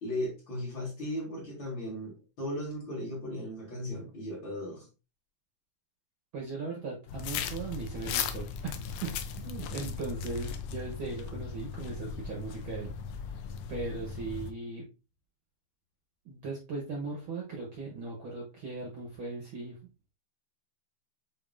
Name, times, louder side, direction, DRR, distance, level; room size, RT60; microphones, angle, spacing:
voice 1, 0.0-4.9, left 1 dB, 45° left, 1.9 m, -36 dB
voice 2, 6.3-8.7 9.0-12.9 13.3-13.4 13.7-14.9 16.2-19.8, right 3 dB, 60° right, 1.4 m, -38 dB
sound 1, 7.1-14.5, left 7 dB, 85° left, 1.4 m, -37 dB
6.9 x 3.0 x 2.5 m
omnidirectional pair, 3.4 m